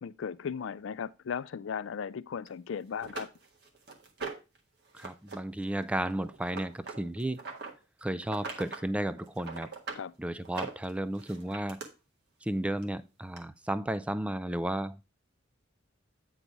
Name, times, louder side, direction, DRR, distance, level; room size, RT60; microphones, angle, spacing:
voice 1, 0.0-3.3 9.9-10.1, left 7 dB, 70° left, 0.4 m, -36 dB
sound 1, 2.5-2.6 3.0-4.6 4.9-5.4 5.6-7.7 8.2-8.9 9.2-10.0 10.4-11.9 12.8-12.9 13.4-13.5, right 4 dB, 55° right, 1.5 m, -41 dB
voice 2, 4.9-7.4 8.0-9.7 10.2-11.8 12.4-15.0, right 1 dB, 5° right, 0.3 m, -33 dB
8.7 x 4.0 x 4.6 m
head